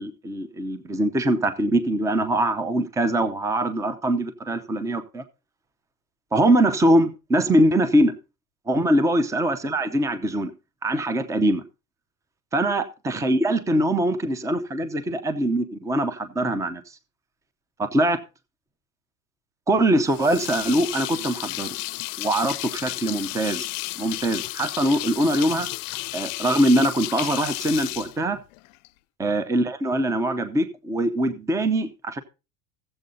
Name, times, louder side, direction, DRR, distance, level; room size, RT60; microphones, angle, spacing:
voice 1, 0.0-5.2 6.3-8.1 8.7-10.5 10.8-11.6 12.5-16.8 17.8-18.2 19.7-21.8 22.2-23.7 24.0-25.7 26.1-28.4 29.2-32.2, right 1 dB, 5° right, 0.7 m, -22 dB
sound 1, 20.1-28.9, left 22 dB, 65° left, 0.7 m, -33 dB
15.5 x 7.8 x 3.9 m
supercardioid pair, 155°, 42 cm